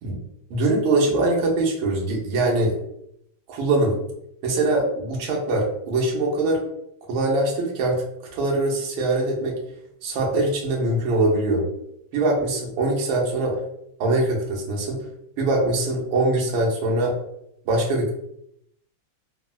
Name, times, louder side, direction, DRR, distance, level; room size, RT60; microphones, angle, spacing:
voice 1, 0.5-2.8 3.5-4.0 4.4-6.6 7.1-8.0 8.3-9.6 10.0-11.6 12.1-13.6 14.0-15.0 15.4-17.1 17.6-18.1, right 2 dB, 80° right, -2 dB, 1.5 m, -22 dB
3.9 x 2.1 x 2.3 m, 0.75 s
omnidirectional pair, 2.3 m